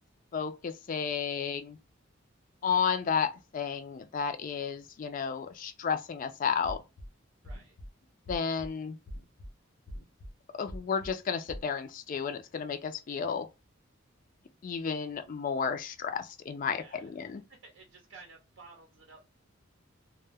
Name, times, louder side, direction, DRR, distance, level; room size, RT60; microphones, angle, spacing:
voice 1, 0.3-1.8 2.6-6.8 8.3-9.0 10.6-13.5 14.6-17.4, left 6 dB, 40° left, 0.3 m, -32 dB
sound 1, 6.6-7.1 7.4-7.9 8.3-8.7 9.1-9.5 9.9-10.3 10.7-11.1 11.5-11.7, equal, 85° left, 0.6 m, -42 dB
voice 2, 7.4-7.8 16.7-17.1 17.5-19.2, right 4 dB, 70° right, 0.6 m, -53 dB
2.1 x 2.0 x 3.3 m
head